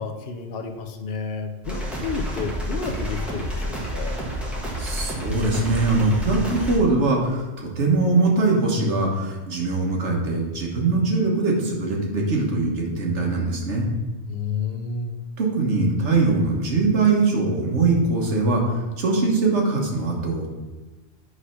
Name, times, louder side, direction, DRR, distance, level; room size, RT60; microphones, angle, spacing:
voice 1, 0.0-4.2 14.3-15.2, left 5 dB, 55° left, 5 dB, 0.9 m, -31 dB
sound 1, 1.6-6.8, equal, ahead, 1.2 m, -29 dB
voice 2, 4.8-13.9 15.4-20.5, right 3 dB, 65° right, 0 dB, 1.6 m, -22 dB
8.1 x 3.3 x 5.7 m, 1.2 s
omnidirectional pair, 1.3 m